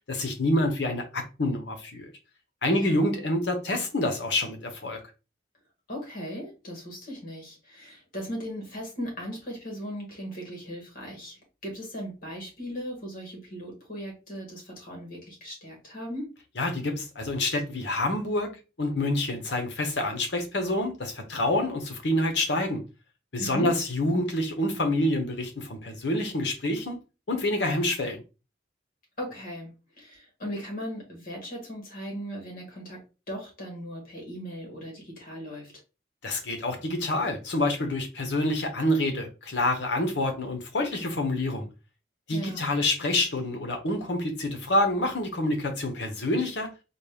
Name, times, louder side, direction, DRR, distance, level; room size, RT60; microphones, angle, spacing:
voice 1, 0.1-2.1 2.6-5.0 16.6-18.5 18.8-22.8 23.3-27.0 27.3-28.2 36.2-41.7 42.3-46.7, left 1 dB, 60° left, 0.8 m, -27 dB
voice 2, 2.7-3.0 5.9-16.3 23.4-23.7 29.2-35.7 42.3-42.6, equal, 45° left, 1.6 m, -38 dB
4.1 x 2.3 x 3.4 m
head